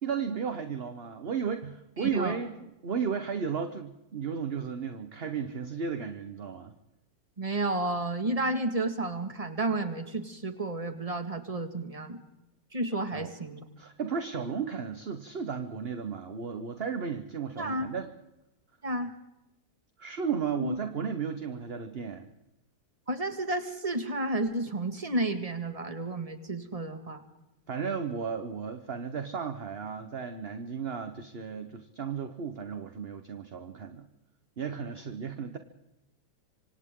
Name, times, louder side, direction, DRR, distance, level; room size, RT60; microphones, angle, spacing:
voice 1, 0.0-6.7 13.1-13.3 13.8-18.1 20.0-22.3 27.7-34.1 34.6-35.6, right 6 dB, 40° right, 8 dB, 1.1 m, -34 dB
voice 2, 2.0-2.4 7.4-12.2 12.7-13.6 17.6-17.9 18.8-19.1 20.6-20.8 23.1-27.2, right 2 dB, 20° right, 7 dB, 1.9 m, -31 dB
26.5 x 25.5 x 3.8 m, 0.93 s
omnidirectional pair, 1.9 m